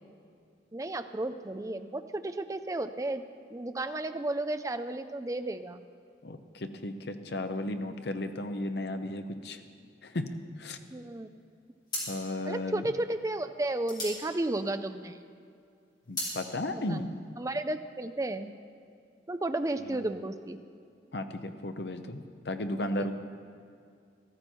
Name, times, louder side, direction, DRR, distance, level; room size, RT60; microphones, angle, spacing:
voice 1, 0.7-3.2 3.5-5.8 10.9-11.3 12.5-15.2 16.9-17.0 17.4-18.5 19.3-20.6 23.0-23.1, right 2 dB, 20° right, 9 dB, 0.4 m, -33 dB
voice 2, 6.2-9.6 10.0-10.8 12.1-12.9 16.1-17.2 19.9-20.0 21.1-23.1, left 1 dB, 60° left, 8 dB, 0.8 m, -35 dB
sound 1, 11.2-11.4 11.8-15.2 15.6-16.4, left 1 dB, 25° left, 3.6 m, -38 dB
14.0 x 13.5 x 4.5 m, 2.3 s
head